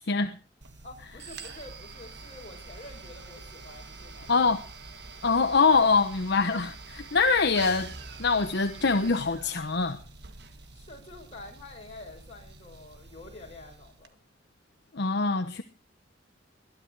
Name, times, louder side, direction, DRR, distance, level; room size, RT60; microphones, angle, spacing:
sound 1, 0.6-14.1, right 4 dB, 60° right, 1.6 m, -46 dB
voice 1, 0.8-4.6 10.7-14.2, left 2 dB, 35° left, 6.4 m, -47 dB
voice 2, 4.3-4.6 5.2-7.9 8.2-10.0 14.9-15.6, left 4 dB, 60° left, 1.0 m, -24 dB
21.5 x 11.5 x 4.7 m
head